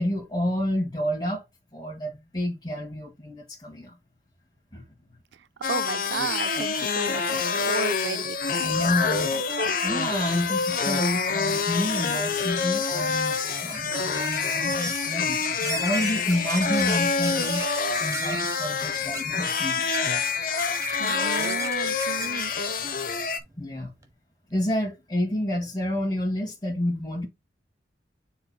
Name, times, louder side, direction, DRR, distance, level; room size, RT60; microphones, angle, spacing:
voice 1, 0.0-1.4 1.7-4.0 4.7-4.8 8.6-9.3 9.8-17.6 18.0-20.3 23.6-23.9 24.5-27.3, left 1 dB, 25° left, 2.2 m, -29 dB
voice 2, 5.3-8.8 9.3-10.0 21.0-22.7, right 6 dB, 75° right, 0.4 m, -34 dB
sound 1, 5.6-23.4, left 5 dB, 50° left, 0.9 m, -27 dB
sound 2, 11.2-24.1, right 4 dB, 20° right, 0.8 m, -40 dB
9.5 x 4.5 x 2.3 m
head